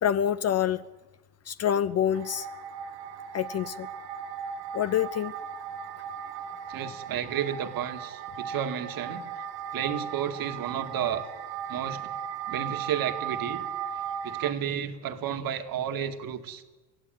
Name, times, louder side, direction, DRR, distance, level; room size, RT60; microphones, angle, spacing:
voice 1, 0.0-0.8 1.5-2.5 3.3-3.9 4.7-5.3, left 9 dB, 35° left, 14 dB, 0.7 m, -26 dB
sound 1, 2.1-14.5, right 8 dB, 85° right, 1.8 m, -37 dB
voice 2, 6.7-9.2 9.7-11.2 11.7-12.1 12.5-13.7 14.2-16.6, right 9 dB, 45° right, 8 dB, 2.2 m, -32 dB
24.0 x 15.5 x 9.4 m, 1.2 s
supercardioid pair, 100°, 46 cm